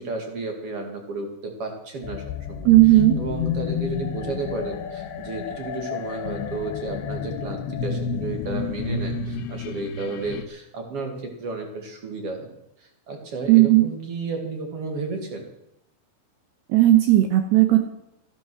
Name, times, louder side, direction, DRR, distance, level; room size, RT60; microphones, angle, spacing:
voice 1, 0.0-2.2 2.5-15.5, right 3 dB, 50° right, 3 dB, 1.8 m, -33 dB
sound 1, 2.0-10.4, left 6 dB, 70° left, 2.5 m, -30 dB
voice 2, 2.6-3.2 13.5-13.8 16.7-17.8, right 16 dB, 75° right, 6 dB, 2.6 m, -15 dB
15.5 x 12.0 x 6.2 m, 0.84 s
omnidirectional pair, 5.8 m